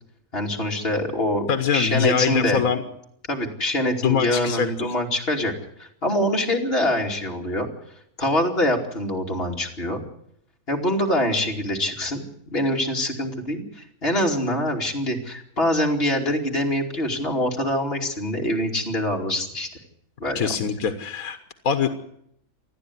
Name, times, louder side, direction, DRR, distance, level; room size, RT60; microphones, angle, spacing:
voice 1, 0.3-1.5 1.7-2.6 3.3-5.5 5.8-7.7 8.2-10.0 10.7-19.7 20.2-20.5, left 1 dB, 40° left, 1 dB, 3.1 m, -24 dB
voice 2, 1.5-2.8 4.0-4.7 20.3-21.4 21.6-21.9, left 7 dB, 70° left, 8 dB, 1.7 m, -23 dB
28.0 x 10.0 x 9.7 m, 0.72 s
omnidirectional pair, 1.6 m